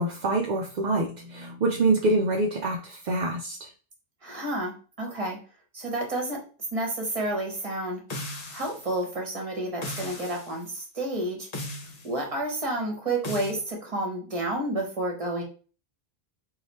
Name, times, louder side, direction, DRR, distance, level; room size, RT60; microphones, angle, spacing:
voice 1, 0.0-3.7, right 2 dB, 55° right, 0 dB, 0.6 m, -26 dB
voice 2, 4.2-5.4 5.7-6.4 6.7-8.0 8.5-11.5 12.0-15.4, right 1 dB, 35° right, 1 dB, 1.1 m, -30 dB
sound 1, 8.1-8.9 9.8-10.5 11.5-12.1 13.2-13.6, left 1 dB, 40° left, 0.7 m, -36 dB
3.2 x 2.3 x 4.1 m, 0.37 s
omnidirectional pair, 1.1 m